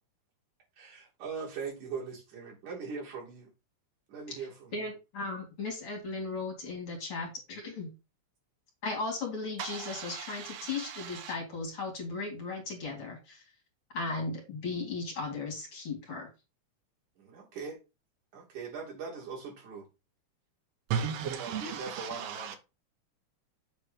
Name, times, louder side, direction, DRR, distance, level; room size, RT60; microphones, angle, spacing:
voice 1, 0.8-3.5 4.1-4.9 17.2-17.8 18.3-19.9 21.3-22.6, right 5 dB, 85° right, 4.0 m, -41 dB
voice 2, 4.7-7.9 8.8-13.5 13.9-16.3, left 3 dB, 50° left, 2.9 m, -36 dB
voice 3, 9.6-11.3 20.9-22.6, right 7 dB, 65° right, 2.1 m, -36 dB
7.5 x 3.4 x 5.0 m
omnidirectional pair, 3.3 m